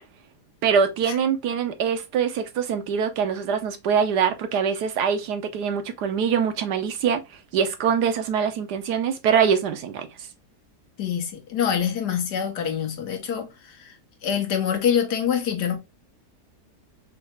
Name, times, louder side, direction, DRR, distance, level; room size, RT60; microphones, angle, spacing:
voice 1, 0.6-7.2 7.5-10.1, right 7 dB, 75° right, 1.3 m, -23 dB
voice 2, 11.0-13.9 14.2-15.8, left 8 dB, 75° left, 1.6 m, -25 dB
5.4 x 2.4 x 3.0 m
omnidirectional pair, 1.8 m